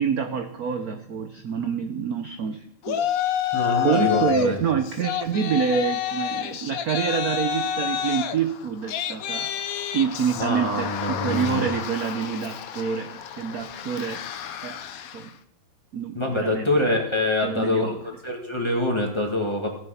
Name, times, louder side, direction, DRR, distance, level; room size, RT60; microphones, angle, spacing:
voice 1, 0.0-3.1 3.8-9.5 9.9-14.2 14.6-14.8 15.1-15.3 15.9-16.7 17.4-18.0, right 7 dB, 60° right, 7 dB, 1.0 m, -27 dB
Yell, 2.8-4.5 4.8-15.3, left 9 dB, 80° left, 0.8 m, -29 dB
voice 2, 3.5-4.6 10.4-11.7 16.2-19.7, left 2 dB, 15° left, 0 dB, 1.9 m, -25 dB
16.0 x 7.3 x 5.8 m, 0.76 s
omnidirectional pair, 2.3 m